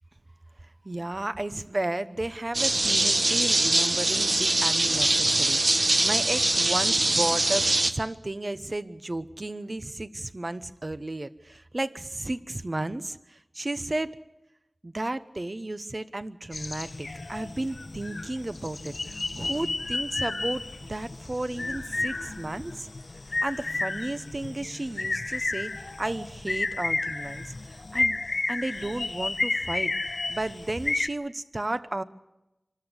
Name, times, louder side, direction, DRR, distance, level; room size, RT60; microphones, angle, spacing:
voice 1, 0.8-14.2 14.8-20.6 20.9-22.9 23.4-28.2 28.5-32.0, right 2 dB, 45° right, 13 dB, 0.9 m, -33 dB
sound 1, 2.5-7.9, right 2 dB, 60° right, 1.3 m, -23 dB
sound 2, 16.5-31.1, left 2 dB, 70° left, 0.8 m, -32 dB
25.5 x 13.5 x 8.1 m, 0.95 s
wide cardioid pair, 50°, 0 cm